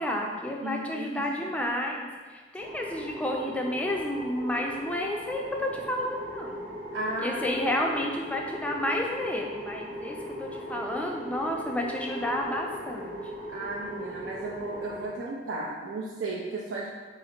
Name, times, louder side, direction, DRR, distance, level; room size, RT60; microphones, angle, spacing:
voice 1, 0.0-6.7 7.2-13.3, left 1 dB, 10° left, 0 dB, 0.3 m, -31 dB
voice 2, 0.6-1.5 6.9-7.5 13.5-16.9, right 2 dB, 85° right, -4 dB, 0.4 m, -35 dB
sound 1, 2.6-15.1, equal, 40° right, 0.8 m, -39 dB
3.9 x 2.4 x 4.3 m, 1.4 s
head